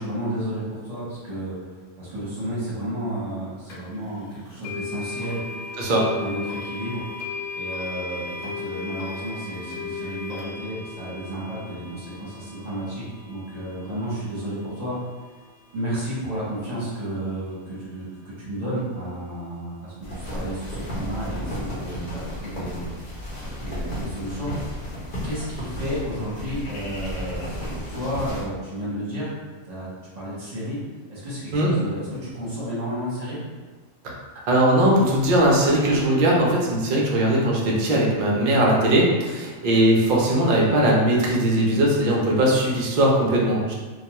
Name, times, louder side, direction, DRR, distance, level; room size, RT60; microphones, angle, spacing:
voice 1, 0.0-1.5 2.0-5.4 6.1-7.0 7.5-14.9 15.7-22.9 23.6-24.5 25.2-29.3 29.7-29.9 30.1-30.8 31.1-33.4, equal, 35° right, -9 dB, 0.8 m, -32 dB
sound 1, 3.7-3.8 4.6-15.6, left 4 dB, 85° left, 1.0 m, -36 dB
voice 2, 5.8-6.1 31.5-31.7 34.5-43.7, right 1 dB, 60° right, -3 dB, 0.5 m, -19 dB
sound 2, 20.0-28.5, equal, 40° left, 0.7 m, -33 dB
2.2 x 2.2 x 2.9 m, 1.3 s
omnidirectional pair, 1.3 m